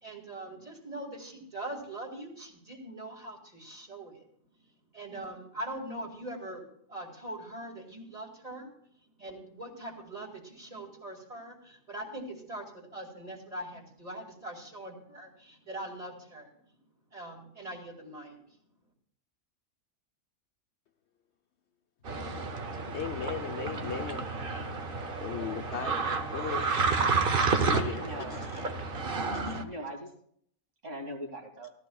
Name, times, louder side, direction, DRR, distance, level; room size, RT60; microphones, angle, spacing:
voice 1, 0.0-4.2 4.9-8.7 9.2-16.5 17.1-18.6, right 1 dB, 30° right, 0 dB, 2.2 m, -42 dB
sound 1, 22.1-29.6, right 4 dB, 45° right, 1.0 m, -30 dB
voice 2, 22.9-24.3 25.2-26.8 27.6-28.7 29.5-29.6, left 7 dB, 60° left, 5 dB, 1.0 m, -37 dB
voice 3, 28.0-28.5 29.1-30.1 30.8-31.7, right 1 dB, 65° right, 1 dB, 2.2 m, -41 dB
17.0 x 12.5 x 2.3 m, 0.65 s
omnidirectional pair, 1.3 m